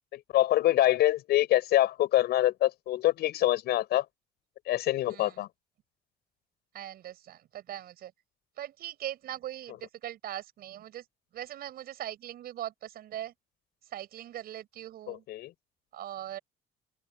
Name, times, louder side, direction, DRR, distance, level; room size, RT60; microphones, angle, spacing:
voice 1, 0.1-4.0 4.7-5.5 15.1-15.5, left 14 dB, 75° left, 6.3 m, -25 dB
voice 2, 5.1-5.4 6.7-8.1 8.6-11.0 11.3-13.3 13.9-15.2 15.9-16.4, right 12 dB, 65° right, 6.3 m, -40 dB
open air
cardioid pair, 110°, 17 cm